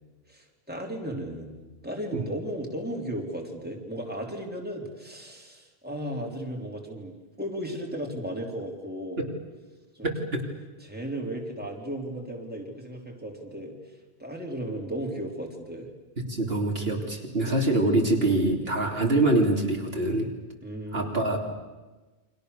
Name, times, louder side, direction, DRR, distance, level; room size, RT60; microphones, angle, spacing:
voice 1, 0.3-1.6 1.8-9.2 10.0-10.1 10.8-13.7 14.2-15.9 20.6-21.2, right 1 dB, 10° right, 0 dB, 3.5 m, -35 dB
voice 2, 10.0-10.4 16.2-20.3 20.9-21.4, right 2 dB, 60° right, 1 dB, 3.5 m, -25 dB
29.5 x 25.0 x 6.8 m, 1.2 s
omnidirectional pair, 1.1 m